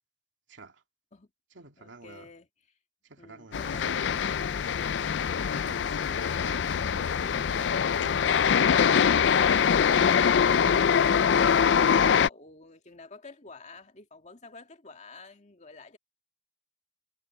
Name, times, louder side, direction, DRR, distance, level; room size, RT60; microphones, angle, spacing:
voice 1, 0.5-0.8 1.5-2.3 3.0-4.3 5.4-7.6 7.9-8.8, right 3 dB, 90° right, 2.6 m, -49 dB
voice 2, 1.8-2.5 3.2-4.3 9.6-16.0, left 3 dB, 40° left, 2.1 m, -50 dB
sound 1, 3.5-12.3, left 7 dB, 65° left, 0.4 m, -23 dB
head